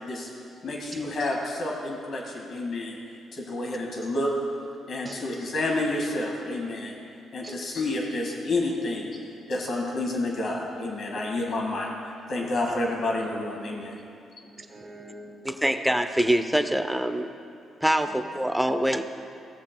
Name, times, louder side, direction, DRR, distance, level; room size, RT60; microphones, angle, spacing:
voice 1, 0.6-3.0 3.3-4.3 4.9-6.9 7.3-9.2 9.5-11.9 12.3-14.0, left 2 dB, 55° left, -1 dB, 1.8 m, -29 dB
voice 2, 4.8-5.3 7.4-7.8 12.4-12.5 14.4-15.8 18.1-18.2, right 2 dB, 30° right, 5 dB, 0.9 m, -44 dB
voice 3, 15.4-17.3 17.8-19.0, right 1 dB, 5° right, 8 dB, 0.5 m, -24 dB
16.5 x 7.2 x 2.2 m, 2.6 s
cardioid pair, 90°, 0 cm